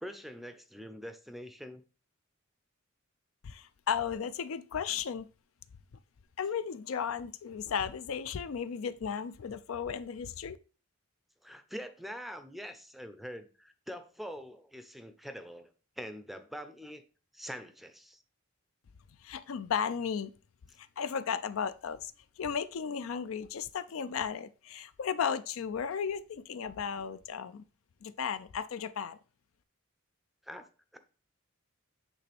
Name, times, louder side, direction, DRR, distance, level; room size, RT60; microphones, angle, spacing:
voice 1, 0.0-1.8 11.4-17.0 17.3-18.2 30.4-31.0, equal, ahead, 0.5 m, -44 dB
voice 2, 3.4-5.3 6.4-10.6 19.2-20.3 20.8-22.1 22.4-27.6 28.0-29.2, left 7 dB, 75° left, 0.4 m, -35 dB
8.2 x 3.3 x 3.4 m
head